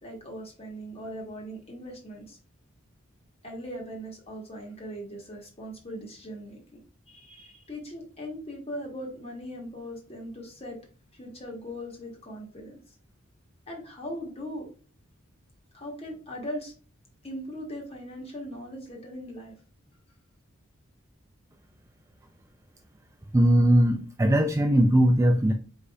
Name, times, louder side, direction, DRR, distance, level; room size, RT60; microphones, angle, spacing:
voice 1, 0.0-2.4 3.4-6.8 7.1-10.8 11.1-13.0 13.7-14.7 15.7-16.7 17.2-19.6, equal, 30° left, 0 dB, 1.7 m, -39 dB
voice 2, 23.3-25.5, right 1 dB, 15° right, 4 dB, 0.4 m, -20 dB
4.9 x 4.0 x 2.3 m, 0.39 s
head